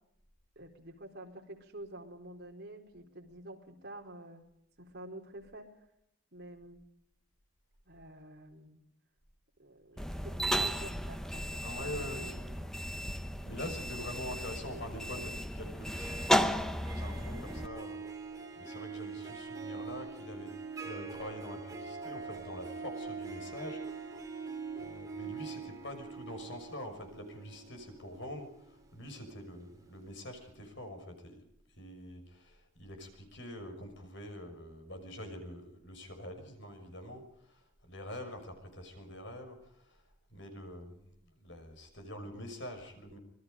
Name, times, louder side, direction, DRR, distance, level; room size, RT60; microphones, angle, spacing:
voice 1, 0.6-4.4 4.8-5.7 6.3-6.8 7.9-8.8 9.6-11.6 12.2-12.7, right 1 dB, 50° right, 2 dB, 4.4 m, -49 dB
sound 1, 10.0-17.7, equal, ahead, 1.0 m, -34 dB
voice 2, 11.6-12.4 13.4-31.4 31.7-43.2, left 1 dB, 55° left, 6 dB, 6.1 m, -45 dB
Harp, 15.8-29.7, right 4 dB, 15° right, 4.3 m, -44 dB
26.5 x 21.0 x 5.2 m, 0.77 s
head